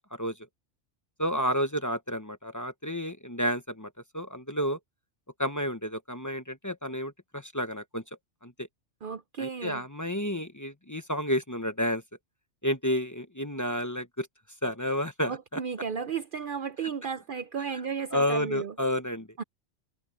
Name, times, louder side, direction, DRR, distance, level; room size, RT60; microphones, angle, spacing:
voice 1, 1.2-4.8 5.4-8.0 8.4-8.5 9.4-12.0 12.6-14.3 14.6-15.6 18.1-19.3, equal, 15° left, 1.0 m, -30 dB
voice 2, 9.0-9.8 15.3-18.7 19.4-19.5, right 6 dB, 55° right, 0.7 m, -34 dB
omnidirectional pair, 1.2 m